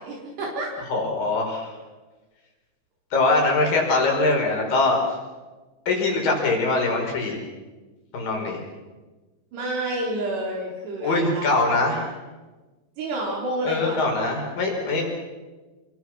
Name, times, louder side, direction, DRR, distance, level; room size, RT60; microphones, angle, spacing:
voice 1, 0.0-0.7 9.5-11.7 13.0-14.0, right 1 dB, 85° right, -2 dB, 6.2 m, -29 dB
voice 2, 0.9-1.7 3.1-5.0 5.9-7.4 8.1-8.6 11.0-12.1 13.7-15.0, left 3 dB, 60° left, 0 dB, 6.9 m, -22 dB
28.5 x 23.0 x 6.4 m, 1.2 s
omnidirectional pair, 4.7 m